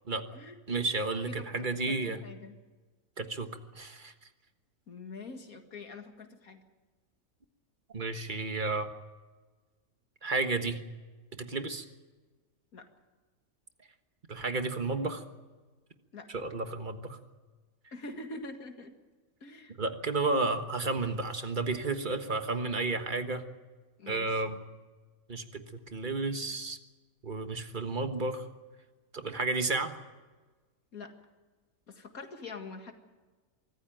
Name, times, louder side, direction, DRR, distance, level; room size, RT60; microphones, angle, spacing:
voice 1, 0.7-2.2 3.2-4.1 7.9-8.9 10.2-10.8 11.4-11.9 14.3-15.2 16.3-17.2 19.8-23.4 24.1-24.6 25.3-26.8 27.2-28.5 29.1-29.9, right 3 dB, 35° right, 7 dB, 1.5 m, -32 dB
voice 2, 1.3-1.7 2.0-2.5 4.9-6.6 12.7-12.9 16.1-16.3 17.9-18.9 19.4-19.7 24.0-24.4 30.9-31.1 31.9-32.9, left 3 dB, 85° left, 5 dB, 2.5 m, -44 dB
24.5 x 14.5 x 9.2 m, 1.3 s
omnidirectional pair, 1.5 m